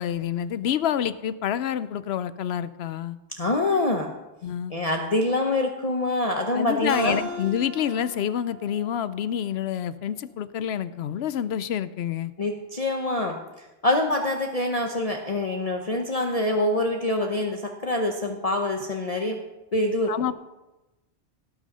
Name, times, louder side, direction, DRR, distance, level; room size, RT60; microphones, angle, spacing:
voice 1, 0.0-3.2 4.4-4.7 6.5-12.3 20.1-20.3, left 9 dB, 70° left, 15 dB, 0.8 m, -28 dB
voice 2, 3.3-4.1 4.7-7.2 12.4-19.4 19.7-20.1, left 2 dB, 35° left, 2 dB, 0.9 m, -25 dB
Keyboard (musical), 6.9-10.1, right 2 dB, 85° right, 2.7 m, -39 dB
17.5 x 6.4 x 5.4 m, 1.0 s
omnidirectional pair, 1.2 m